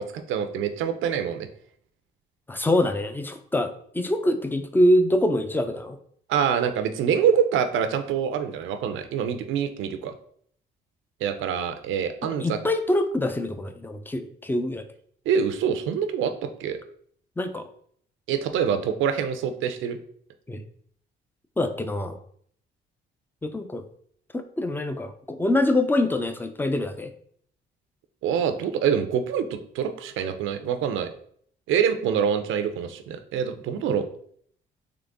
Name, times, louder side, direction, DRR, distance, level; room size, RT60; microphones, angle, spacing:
voice 1, 0.0-1.5 6.3-10.1 11.2-12.6 15.3-16.8 18.3-20.0 28.2-31.1 31.7-34.0, right 7 dB, 85° right, 8 dB, 0.6 m, -25 dB
voice 2, 2.5-6.0 12.2-14.8 17.4-17.7 20.5-20.6 21.6-22.2 23.4-23.8 24.3-27.1, left 1 dB, 10° left, 8 dB, 0.5 m, -24 dB
3.8 x 3.4 x 3.5 m, 0.62 s
cardioid pair, 90°, 20 cm